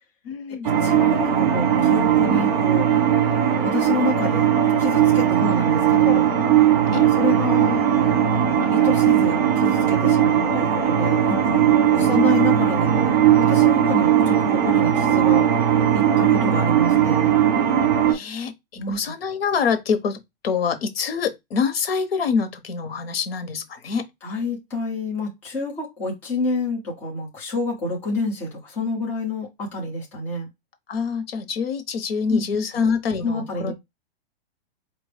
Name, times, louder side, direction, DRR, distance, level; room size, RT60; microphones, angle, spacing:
voice 1, 0.2-0.7 5.5-5.6 6.9-7.1 10.3-10.6 11.9-12.1 18.1-18.5 18.9-20.2 20.4-24.0 30.9-33.7, left 6 dB, 75° left, 1.1 m, -25 dB
sound 1, 0.6-18.1, right 10 dB, 45° right, 1.2 m, -18 dB
voice 2, 0.8-3.0 3.6-4.5 4.8-6.3 6.9-7.9 8.5-11.7 11.9-15.6 15.9-17.2 18.8-19.0 24.2-30.5 32.3-32.4 33.2-33.7, left 2 dB, 5° left, 0.6 m, -28 dB
4.6 x 2.5 x 3.2 m
hypercardioid pair, 180°, 30 cm